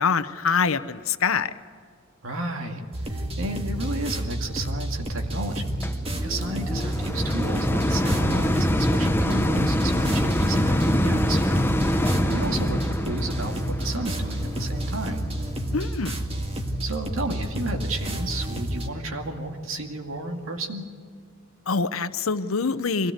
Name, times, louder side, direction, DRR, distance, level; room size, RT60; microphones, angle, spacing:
voice 1, 0.0-1.5 15.7-16.2 21.7-23.1, left 5 dB, 75° left, 13 dB, 0.9 m, -25 dB
voice 2, 2.2-5.8 6.2-15.2 16.8-20.9, right 2 dB, 75° right, 3 dB, 2.2 m, -33 dB
sound 1, 2.9-18.9, right 1 dB, 30° right, 1.9 m, -30 dB
sound 2, 5.8-17.1 17.7-17.8, equal, 10° left, 0.9 m, -25 dB
23.5 x 17.5 x 8.1 m, 2.1 s
head